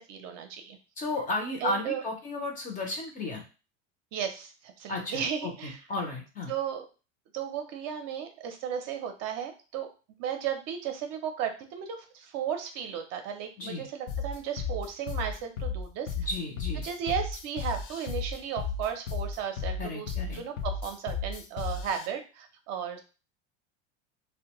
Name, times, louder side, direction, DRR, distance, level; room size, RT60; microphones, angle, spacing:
voice 1, 0.0-0.8 1.6-2.0 4.1-5.8 6.5-6.9 7.3-9.9 10.2-16.3 16.8-23.0, right 8 dB, 50° right, 5 dB, 0.5 m, -35 dB
voice 2, 1.0-3.4 4.9-6.5 13.6-13.9 16.2-16.9 19.8-20.4, left 2 dB, 25° left, 2 dB, 0.5 m, -34 dB
sound 1, 14.1-22.1, left 5 dB, 70° left, 0.6 m, -34 dB
2.5 x 2.1 x 2.9 m, 0.33 s
supercardioid pair, 140°, 35 cm